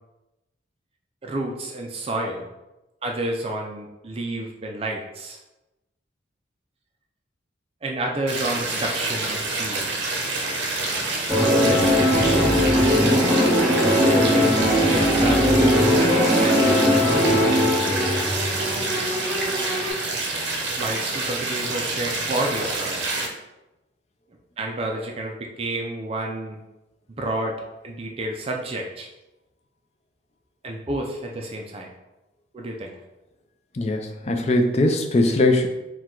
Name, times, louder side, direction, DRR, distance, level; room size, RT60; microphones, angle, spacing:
voice 1, 1.2-2.5 3.0-5.4 7.8-10.1 11.4-12.6 13.9-16.9 17.4-18.2 20.8-23.0 24.6-26.6 27.2-27.6 27.8-29.1 30.6-31.9 32.5-32.9, right 1 dB, 30° right, 1 dB, 0.4 m, -30 dB
sound 1, 8.3-23.3, right 2 dB, 70° right, 0.7 m, -27 dB
sound 2, 11.3-19.9, equal, 5° left, 1.1 m, -20 dB
voice 2, 33.7-35.7, left 2 dB, 35° left, 4 dB, 0.4 m, -20 dB
4.6 x 2.3 x 3.7 m, 0.99 s
head